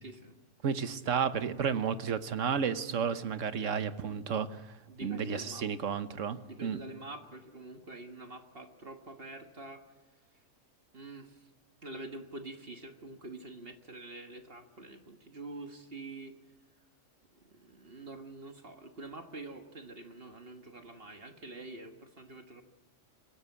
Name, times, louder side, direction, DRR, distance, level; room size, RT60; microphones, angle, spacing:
voice 1, 0.0-0.4 3.6-3.7 4.9-5.7 6.5-9.8 10.9-11.4 11.8-16.3 17.4-22.6, right 2 dB, 50° right, 5 dB, 1.8 m, -46 dB
voice 2, 0.6-4.6 5.0-6.8, right 7 dB, 80° right, 11 dB, 1.4 m, -32 dB
26.5 x 17.0 x 8.4 m, 1.3 s
omnidirectional pair, 1.3 m